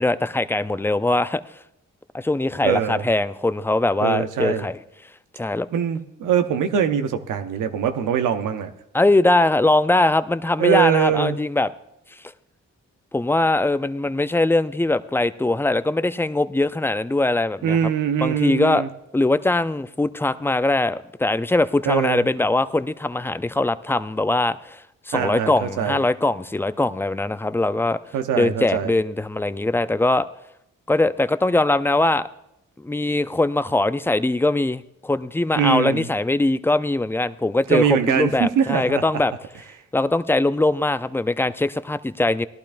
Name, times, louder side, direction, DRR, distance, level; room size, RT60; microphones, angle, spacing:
voice 1, 0.0-1.4 2.1-4.8 5.3-5.7 8.9-11.7 13.1-17.8 18.2-18.8 19.1-28.0 28.4-30.3 30.9-32.3 32.8-39.3 39.9-42.5, left 2 dB, 10° left, 14 dB, 0.4 m, -21 dB
voice 2, 2.6-3.0 4.0-4.6 5.7-8.7 10.6-11.4 17.6-18.9 21.8-22.3 25.1-26.0 28.1-28.9 35.6-36.1 37.7-39.0, right 8 dB, 90° right, 8 dB, 0.8 m, -22 dB
17.5 x 11.5 x 2.5 m, 0.83 s
cardioid pair, 55°, 30 cm